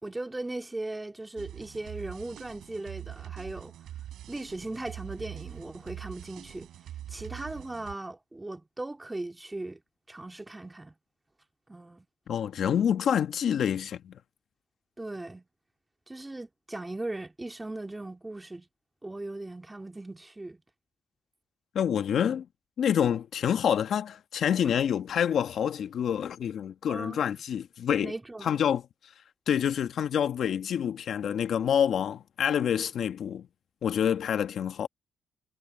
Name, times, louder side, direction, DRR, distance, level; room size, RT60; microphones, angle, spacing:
voice 1, 0.0-3.7 4.3-6.7 7.1-9.8 10.1-10.9 11.7-12.1 15.0-15.5 16.1-18.7 19.0-20.6 24.6-24.7 26.9-27.2 28.0-28.7, right 2 dB, 15° right, 2.8 m, -38 dB
sound 1, 1.4-8.0, right 12 dB, 80° right, 4.3 m, -43 dB
voice 2, 12.3-14.1 21.7-22.4 22.8-28.1 28.4-28.8 29.5-33.4 33.8-34.9, left 8 dB, 65° left, 1.5 m, -27 dB
cardioid pair, 90°, 0 cm